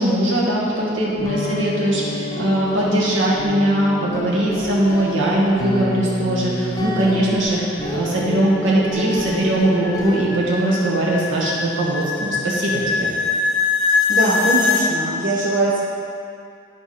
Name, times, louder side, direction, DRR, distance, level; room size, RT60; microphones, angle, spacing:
voice 1, 0.0-13.1, right 1 dB, 85° right, -6 dB, 1.8 m, -20 dB
sound 1, 1.0-10.2, equal, 20° left, 0.7 m, -29 dB
sound 2, 7.7-14.9, left 5 dB, 85° left, 0.7 m, -23 dB
voice 2, 14.1-15.8, right 2 dB, 45° right, -6 dB, 1.0 m, -21 dB
10.5 x 4.7 x 4.3 m, 2.3 s
head